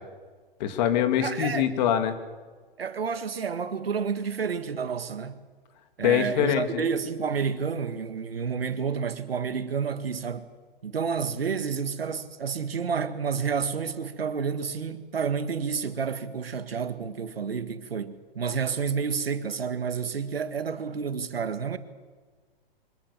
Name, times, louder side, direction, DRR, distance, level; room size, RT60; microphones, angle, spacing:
voice 1, 0.6-2.2 6.0-6.8, left 10 dB, 45° left, 2.5 m, -24 dB
voice 2, 1.2-1.7 2.8-5.4 6.0-10.5 10.8-21.8, right 6 dB, 75° right, 1.8 m, -30 dB
24.5 x 18.5 x 7.2 m
figure-of-eight pair, 115°, 30 cm